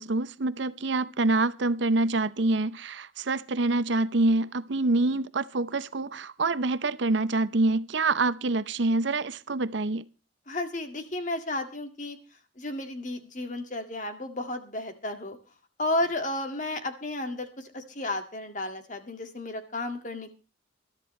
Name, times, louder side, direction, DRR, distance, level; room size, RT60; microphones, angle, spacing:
voice 1, 0.0-10.0, right 2 dB, 70° right, 0.7 m, -26 dB
voice 2, 10.5-12.2 12.6-15.4 15.8-20.3, left 2 dB, 40° left, 2.1 m, -33 dB
21.0 x 13.0 x 3.2 m
head